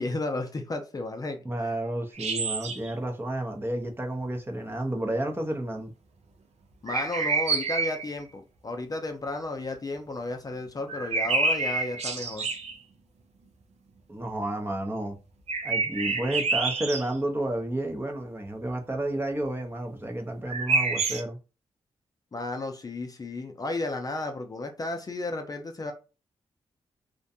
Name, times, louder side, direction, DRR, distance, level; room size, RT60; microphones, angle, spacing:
voice 1, 0.0-1.7 6.8-12.5 22.3-25.9, left 2 dB, 30° left, 0.5 m, -33 dB
voice 2, 1.4-5.9 14.1-15.1 15.6-21.4, right 1 dB, 20° right, 0.6 m, -31 dB
sound 1, 2.1-2.9 6.9-8.1 10.9-12.8 15.5-17.1 20.5-21.2, right 4 dB, 70° right, 0.5 m, -28 dB
2.5 x 2.1 x 2.7 m
cardioid pair, 60°, 12 cm